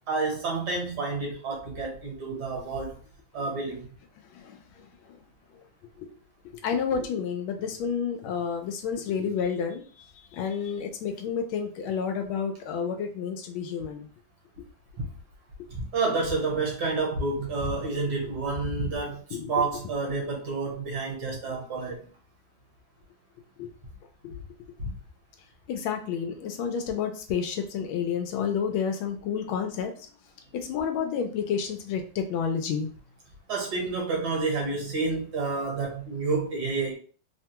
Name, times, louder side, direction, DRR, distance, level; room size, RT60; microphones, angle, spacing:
voice 1, 0.1-3.0 3.3-3.9 15.9-19.2 19.5-22.0 24.8-24.9 33.5-36.9, right 3 dB, 60° right, 1.6 m, -29 dB
voice 2, 4.3-5.2 6.0-6.1 6.6-10.1 10.3-14.1 19.3-19.5 23.6-23.7 24.2-24.3 25.7-30.1 30.5-32.9, left 7 dB, 85° left, 1.4 m, -30 dB
3.6 x 2.2 x 2.8 m
omnidirectional pair, 2.2 m